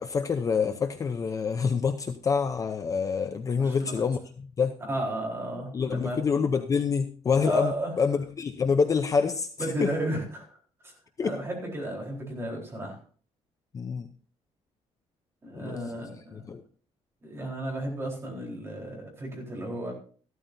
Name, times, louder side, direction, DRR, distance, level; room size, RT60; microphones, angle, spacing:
voice 1, 0.0-4.8 5.7-9.5 9.8-9.9 11.2-11.3 13.7-14.1 15.5-15.8 16.3-16.6, left 5 dB, 25° left, 7 dB, 0.6 m, -27 dB
voice 2, 3.6-4.0 4.9-6.2 7.4-7.9 9.6-10.6 10.8-10.9 11.2-13.0 15.4-16.4 17.2-19.9, right 1 dB, 20° right, -2 dB, 4.2 m, -33 dB
14.5 x 12.5 x 2.7 m, 0.42 s
cardioid pair, 180°, 12 cm